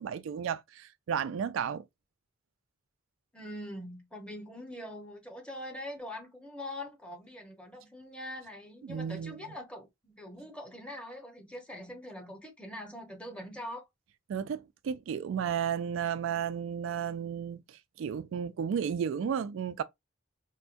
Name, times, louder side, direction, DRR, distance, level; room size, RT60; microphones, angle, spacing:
voice 1, 0.0-1.8 8.9-9.4 14.3-19.8, right 8 dB, 80° right, 0.3 m, -33 dB
voice 2, 3.3-13.9, left 1 dB, 5° left, 1.0 m, -43 dB
4.4 x 2.1 x 2.6 m
head